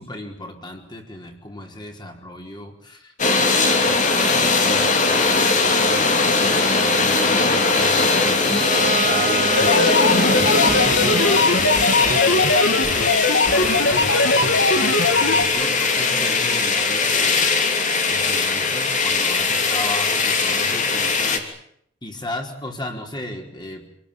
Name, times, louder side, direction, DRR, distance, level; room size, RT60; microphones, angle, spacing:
voice 1, 0.0-3.1 3.7-9.9 10.3-13.1 13.5-17.5 18.1-21.5 22.0-23.9, left 1 dB, 25° left, 2 dB, 4.7 m, -35 dB
sound 1, 3.2-21.4, left 3 dB, 45° left, 3.2 m, -20 dB
Bowed string instrument, 8.5-14.1, right 4 dB, 45° right, 1.7 m, -29 dB
sound 2, 9.6-15.4, left 3 dB, 75° left, 2.5 m, -20 dB
28.0 x 19.0 x 9.0 m, 0.72 s
head